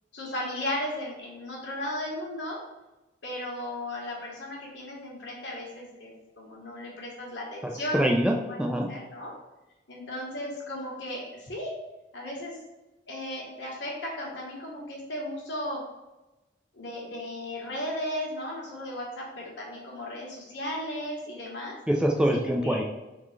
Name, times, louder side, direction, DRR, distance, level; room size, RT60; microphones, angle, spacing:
voice 1, 0.1-2.6 3.2-8.0 8.5-8.6 8.9-9.4 9.9-11.7 12.1-12.6 13.1-15.8 16.7-21.7 22.3-22.8, left 1 dB, 75° left, -3 dB, 1.4 m, -35 dB
voice 2, 7.6-8.9 21.9-22.8, equal, 5° right, 0 dB, 0.4 m, -25 dB
3.7 x 3.7 x 3.2 m, 1.0 s
head